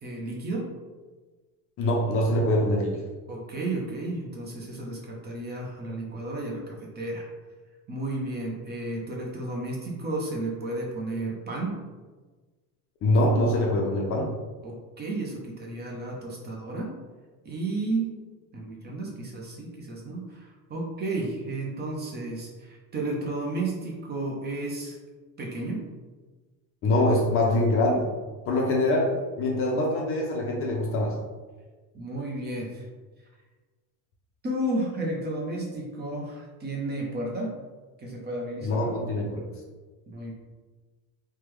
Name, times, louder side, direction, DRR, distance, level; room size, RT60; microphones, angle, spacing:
voice 1, 0.0-0.7 3.3-7.3 7.9-11.8 14.6-17.0 17.4-18.2 18.5-25.0 25.4-25.8 31.9-32.9 34.4-37.5 38.0-39.0 40.1-40.3, right 2 dB, 25° right, -1 dB, 0.5 m, -32 dB
voice 2, 1.8-3.0 13.0-14.3 26.8-28.1 28.5-31.2 38.6-39.4, left 1 dB, 35° left, 0 dB, 0.4 m, -24 dB
3.3 x 2.2 x 3.0 m, 1.3 s
cardioid pair, 140°, 39 cm